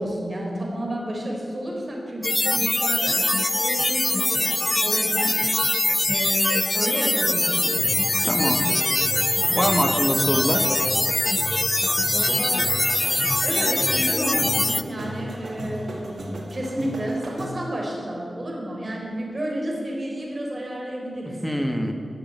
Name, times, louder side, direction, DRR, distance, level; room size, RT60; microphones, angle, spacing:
voice 1, 0.0-5.3 6.1-7.9 9.5-9.9 10.3-10.5 12.1-21.4, right 1 dB, 35° right, -2 dB, 3.9 m, -31 dB
sound 1, 2.2-14.8, left 2 dB, 25° left, 0.5 m, -23 dB
sound 2, 7.8-17.7, equal, 80° right, 2.1 m, -35 dB
voice 2, 8.2-8.8 9.5-10.7 21.4-21.9, equal, ahead, 4 dB, 1.5 m, -24 dB
15.5 x 6.8 x 9.3 m, 2.7 s
wide cardioid pair, 95°, 0 cm